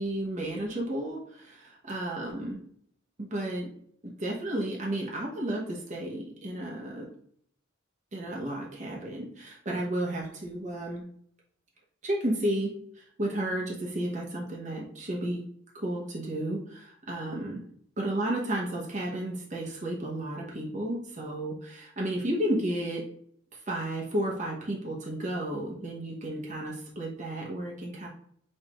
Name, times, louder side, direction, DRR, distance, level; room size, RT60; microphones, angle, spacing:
voice 1, 0.0-2.6 3.2-3.7 4.2-7.1 8.1-11.0 12.0-15.4 15.7-17.6 18.0-23.0 23.5-28.1, right 1 dB, 40° right, -3 dB, 0.9 m, -32 dB
6.4 x 2.5 x 3.0 m, 0.66 s
head